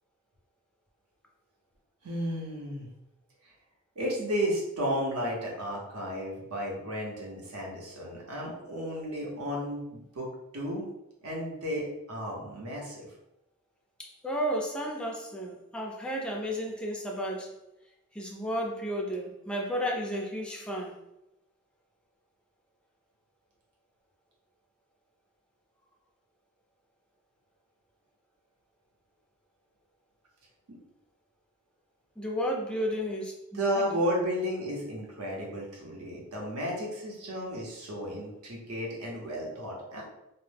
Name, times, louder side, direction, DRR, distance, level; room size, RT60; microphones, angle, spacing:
voice 1, 2.0-2.9 3.4-3.5 4.0-10.3 10.5-10.9 11.2-13.1 30.7-30.8 33.5-40.0, equal, 75° right, -2 dB, 0.8 m, -33 dB
voice 2, 14.0-17.5 18.1-20.9 32.2-33.3 33.7-33.9, equal, 5° left, -1 dB, 0.3 m, -32 dB
2.1 x 2.0 x 3.2 m, 0.87 s
head